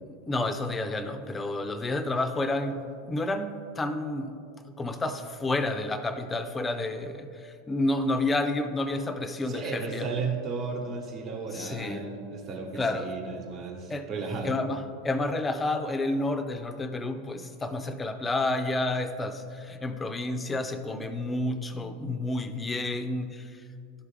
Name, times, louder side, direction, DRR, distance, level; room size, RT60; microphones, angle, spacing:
voice 1, 0.1-4.4 4.6-10.1 11.5-12.0 12.8-13.4 13.9-14.1 14.4-23.6, left 2 dB, 15° left, 9 dB, 0.5 m, -30 dB
voice 2, 9.5-14.5, right 4 dB, 40° right, 2 dB, 1.2 m, -34 dB
12.0 x 4.7 x 3.4 m, 2.5 s
figure-of-eight pair, 85°, 0 cm